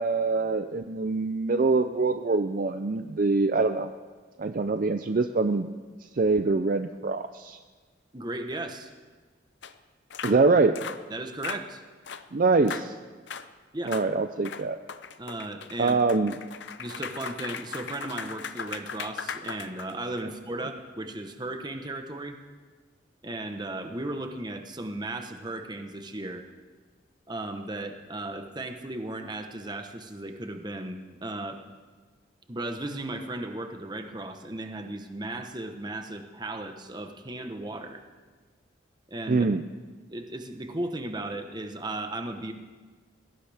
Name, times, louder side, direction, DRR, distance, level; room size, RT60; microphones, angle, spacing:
voice 1, 0.0-3.9 4.4-5.7 6.2-7.6 10.2-10.8 12.3-12.9 13.9-14.8 15.8-16.4 39.3-39.6, right 3 dB, 45° right, 8 dB, 0.5 m, -24 dB
voice 2, 8.1-8.9 11.1-11.8 13.7-14.0 15.2-16.0 16.8-22.4 23.2-26.5 27.3-31.6 32.5-38.0 39.1-39.5 40.1-42.5, right 2 dB, 20° right, 5 dB, 1.1 m, -36 dB
sound 1, 9.6-9.7 10.1-10.4 10.8-11.0 11.4-11.6 12.1-12.3 12.7-12.9 13.3-13.5 13.9-14.1 14.4-20.2, left 6 dB, 60° left, 0.7 m, -38 dB
21.0 x 17.0 x 3.5 m, 1.4 s
head